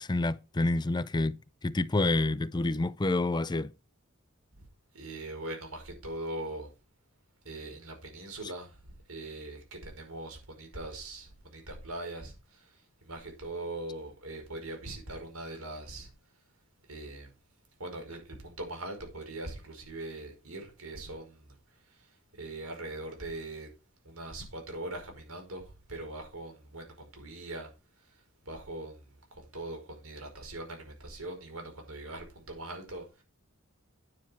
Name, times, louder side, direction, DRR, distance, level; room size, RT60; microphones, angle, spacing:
voice 1, 0.0-1.4 1.6-3.7, left 2 dB, 20° left, 0.5 m, -28 dB
voice 2, 4.9-6.7 7.5-16.1 16.9-17.3 17.8-21.5 21.9-22.1 22.4-23.7 24.0-27.7 28.0-28.2 28.4-33.2, right 2 dB, 90° right, 5.2 m, -41 dB
9.6 x 7.1 x 4.7 m
head